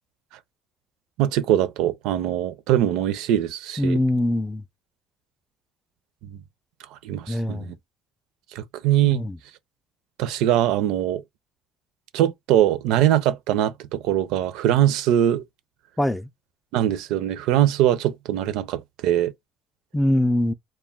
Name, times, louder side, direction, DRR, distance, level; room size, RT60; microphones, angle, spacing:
voice 1, 1.2-4.0 6.3-6.4 7.0-7.7 8.5-9.2 10.2-11.2 12.1-15.4 16.7-19.3, right 11 dB, 80° right, 0.4 m, -22 dB
voice 2, 3.8-4.6 7.3-7.7 9.0-9.4 16.0-16.3 19.9-20.5, left 1 dB, 5° left, 0.3 m, -23 dB
2.2 x 2.2 x 3.5 m
cardioid pair, 100°, 0 cm